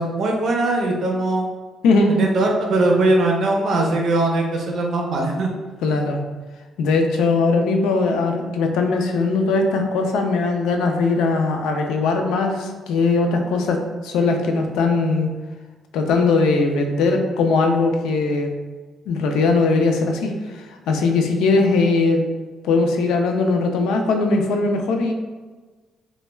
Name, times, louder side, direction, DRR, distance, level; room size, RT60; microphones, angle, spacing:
voice 1, 0.0-1.5 2.1-5.5, right 2 dB, 65° right, 0 dB, 0.5 m, -20 dB
voice 2, 1.8-2.2 5.8-6.2 6.8-13.8 14.0-15.3 15.9-18.5 19.1-22.3 22.6-25.1, left 3 dB, 90° left, 4 dB, 0.3 m, -20 dB
2.2 x 2.2 x 3.0 m, 1.3 s
cardioid pair, 90°, 0 cm